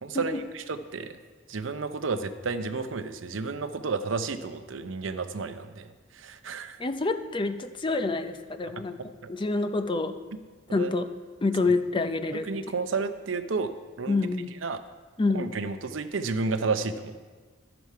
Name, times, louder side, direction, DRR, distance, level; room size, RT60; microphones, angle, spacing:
voice 1, 0.0-1.2 1.5-6.8 9.2-9.3 10.7-10.9 12.5-13.7 14.0-14.2 14.6-14.8 15.3-17.3, right 4 dB, 75° right, 10 dB, 0.6 m, -31 dB
voice 2, 6.8-9.0 9.3-10.1 10.7-11.1 11.4-12.5 14.1-14.5 15.2-15.5, left 3 dB, 25° left, 8 dB, 0.5 m, -27 dB
12.0 x 7.0 x 4.7 m, 1.4 s
head